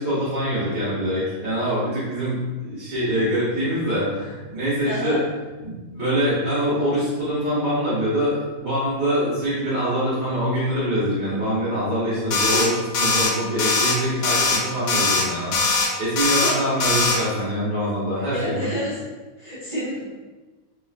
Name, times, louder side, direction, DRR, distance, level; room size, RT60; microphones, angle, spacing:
voice 1, 0.0-5.2 5.6-15.5 16.0-18.7, equal, 70° right, -12 dB, 2.0 m, -24 dB
voice 2, 4.9-5.2 16.3-16.6 18.2-19.0 19.4-20.1, equal, 50° right, -8 dB, 0.5 m, -29 dB
sound 1, 12.3-12.7 12.9-13.3 13.6-13.9 14.2-14.6 14.9-15.2 15.5-15.9 16.2-16.5 16.8-17.2, left 4 dB, 65° left, 1.0 m, -20 dB
3.8 x 3.7 x 2.5 m, 1.2 s
omnidirectional pair, 2.0 m